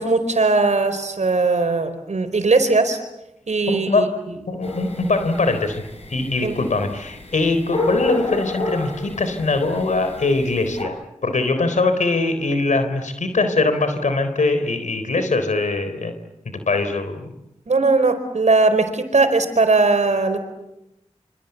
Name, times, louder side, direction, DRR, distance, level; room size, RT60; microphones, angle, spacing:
voice 1, 0.0-3.0 3.5-4.1 6.4-6.6 17.7-20.4, right 3 dB, 70° right, 9 dB, 4.7 m, -19 dB
voice 2, 3.7-4.2 4.5-5.8 6.1-10.9 11.2-16.1 16.7-17.3, left 3 dB, 80° left, 9 dB, 3.9 m, -22 dB
sound 1, 4.6-10.8, left 2 dB, 55° left, 7.3 m, -30 dB
27.5 x 26.5 x 8.2 m, 0.89 s
cardioid pair, 45°, 12 cm